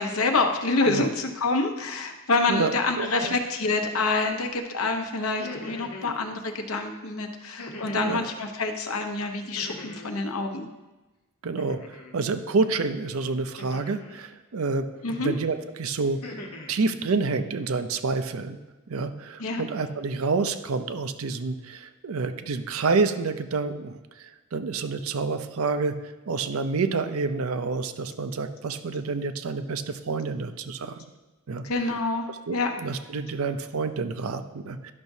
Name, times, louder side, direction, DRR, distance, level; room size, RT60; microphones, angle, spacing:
voice 1, 0.0-10.7 15.0-15.3 19.4-19.6 31.6-32.7, left 3 dB, 65° left, 4 dB, 0.9 m, -27 dB
voice 2, 2.5-3.4 6.0-6.2 8.0-8.2 11.4-14.9 15.2-16.4 16.7-18.6 18.9-26.0 26.3-31.0 31.5-31.6 32.5-34.9, right 4 dB, 65° right, 9 dB, 0.5 m, -28 dB
sound 1, 5.2-6.2 7.6-8.3 9.6-10.2 11.6-12.1 13.6-14.2 15.1-15.5 15.9-16.8, left 2 dB, 85° left, 1.1 m, -41 dB
12.0 x 5.9 x 2.7 m, 1.1 s
head